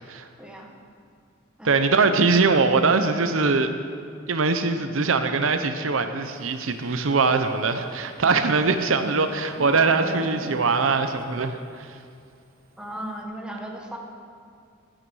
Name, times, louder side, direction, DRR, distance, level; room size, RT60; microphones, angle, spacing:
voice 1, 0.4-0.8 1.6-1.8 12.8-14.0, right 1 dB, 5° right, 0 dB, 1.3 m, -36 dB
voice 2, 1.6-3.7 4.3-11.9, right 4 dB, 80° right, 8 dB, 0.7 m, -22 dB
Livestock farm animals working animals, 7.7-11.0, right 1 dB, 45° right, 1.2 m, -39 dB
14.5 x 9.0 x 6.3 m, 2.3 s
head